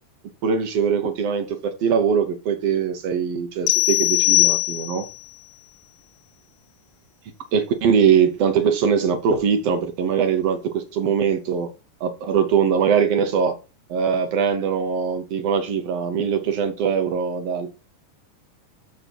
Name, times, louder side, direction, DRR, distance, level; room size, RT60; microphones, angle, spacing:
voice 1, 0.4-5.0 7.5-11.7 12.0-13.5 13.9-17.7, right 7 dB, 65° right, 1.6 m, -21 dB
sound 1, 3.7-5.2, left 22 dB, 80° left, 2.1 m, -20 dB
7.1 x 6.6 x 4.5 m
omnidirectional pair, 3.9 m